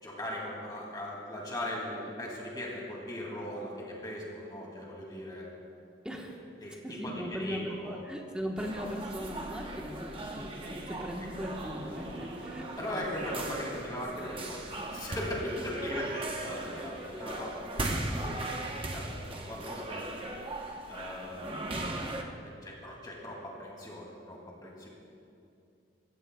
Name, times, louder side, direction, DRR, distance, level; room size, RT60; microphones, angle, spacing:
voice 1, 0.0-5.5 6.6-8.0 12.8-18.5 18.9-20.3 20.9-21.6 22.4-24.9, left 1 dB, 20° left, -3 dB, 2.4 m, -39 dB
voice 2, 6.0-6.4 6.8-13.6, equal, 5° right, 0 dB, 1.1 m, -39 dB
sound 1, 8.6-22.2, right 1 dB, 25° right, 0.9 m, -38 dB
sound 2, 11.2-18.2, right 2 dB, 65° right, 0.9 m, -50 dB
21.0 x 15.0 x 2.3 m, 2.6 s
head